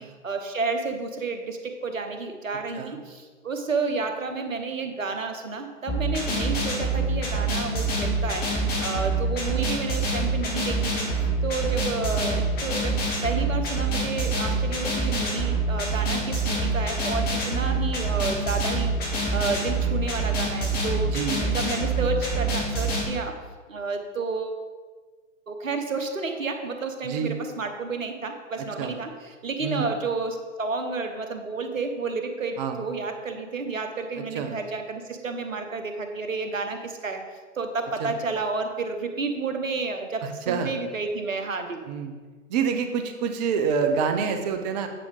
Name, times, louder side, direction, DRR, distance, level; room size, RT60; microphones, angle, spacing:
voice 1, 0.0-8.5 8.8-21.1 21.5-23.4 23.7-24.6 25.5-37.2 37.5-41.8, right 4 dB, 80° right, 6 dB, 1.2 m, -31 dB
sound 1, 5.9-23.0, right 2 dB, 25° left, 2.0 m, -26 dB
voice 2, 21.0-21.4 27.0-27.4 28.8-29.0 29.6-29.9 32.6-32.8 34.1-34.5 38.0-38.1 40.2-40.7 41.9-42.1 42.5-44.9, right 6 dB, 35° right, 7 dB, 0.8 m, -27 dB
9.0 x 5.0 x 5.0 m, 1.4 s
figure-of-eight pair, 115°, 39 cm